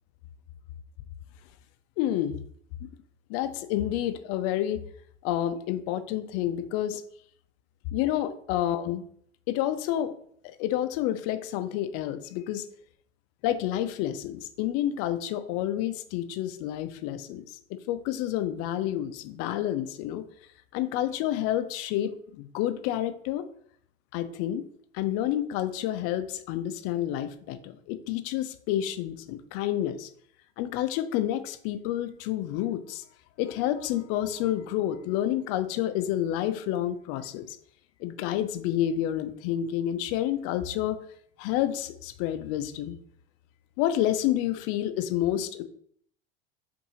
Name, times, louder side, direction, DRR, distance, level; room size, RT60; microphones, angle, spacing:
voice 1, 2.0-2.4 2.8-2.9 3.3-4.8 5.2-7.0 7.9-9.0 9.5-10.1 10.4-12.7 13.4-20.3 20.7-23.4 24.1-24.6 24.9-30.1 30.6-33.0 33.4-37.6 38.0-41.0 41.4-43.0 43.8-45.6, left 12 dB, 50° left, 10 dB, 0.5 m, -29 dB
5.3 x 2.6 x 3.0 m, 0.63 s
hypercardioid pair, 80°, 30 cm